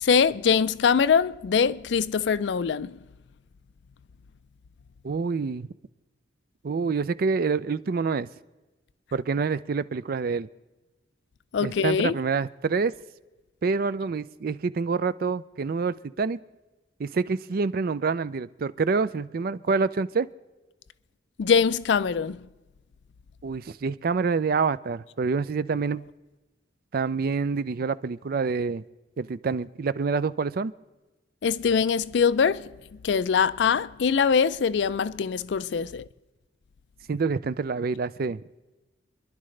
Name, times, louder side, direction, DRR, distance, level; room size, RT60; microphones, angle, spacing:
voice 1, 0.0-2.9 11.5-12.1 21.4-22.4 31.4-32.6 33.0-36.0, left 6 dB, 75° left, 0.4 m, -23 dB
voice 2, 5.0-5.7 6.6-8.3 9.1-10.5 11.6-12.9 13.6-16.4 17.0-20.3 23.4-26.0 26.9-28.8 29.2-30.7 37.1-38.4, right 4 dB, 55° right, 0.4 m, -27 dB
27.0 x 11.0 x 3.3 m
head